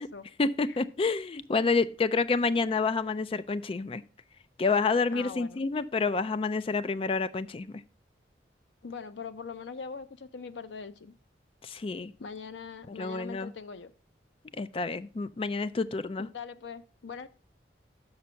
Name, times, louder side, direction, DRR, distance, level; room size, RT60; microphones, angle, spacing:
voice 1, 0.4-4.0 4.6-7.8 11.6-12.1 13.0-13.5 14.6-16.3, left 4 dB, 30° left, 0.3 m, -28 dB
voice 2, 5.1-5.6 8.8-11.1 12.2-13.9 16.2-17.3, left 5 dB, 80° left, 0.6 m, -42 dB
6.5 x 6.0 x 5.5 m
head